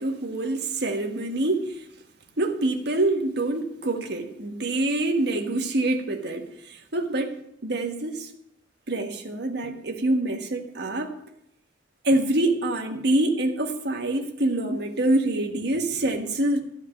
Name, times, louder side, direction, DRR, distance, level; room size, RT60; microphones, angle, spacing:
voice 1, 0.0-1.8 2.4-8.3 8.9-11.1 12.0-16.6, right 2 dB, 65° right, 1.5 m, -26 dB
13.5 x 4.9 x 8.9 m
head